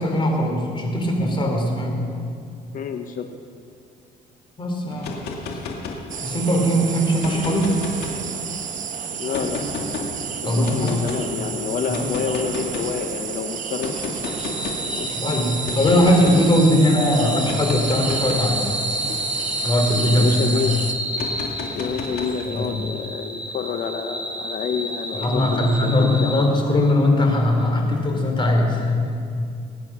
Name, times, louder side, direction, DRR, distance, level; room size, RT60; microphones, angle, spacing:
voice 1, 0.0-2.0 4.6-5.1 6.2-7.8 10.4-11.0 11.9-12.1 15.1-18.6 19.6-20.6 22.5-22.7 25.1-29.3, left 1 dB, 30° left, 2 dB, 3.4 m, -20 dB
voice 2, 2.7-3.3 9.2-10.1 10.4-14.5 14.9-15.1 20.1-20.8 21.2-21.3 21.7-26.3, left 6 dB, 55° left, 7 dB, 0.8 m, -29 dB
sound 1, 4.9-6.5 7.1-8.6 9.3-10.1 10.6-11.2 11.9-13.0 13.8-14.9 15.7-16.5 17.4-20.2 21.1-22.7, left 3 dB, 70° left, 2.3 m, -32 dB
sound 2, 6.1-20.9, right 7 dB, 50° right, 1.2 m, -32 dB
sound 3, 14.2-26.5, equal, 10° right, 1.5 m, -30 dB
21.0 x 9.1 x 6.1 m, 2.3 s
cardioid pair, 110°, 17 cm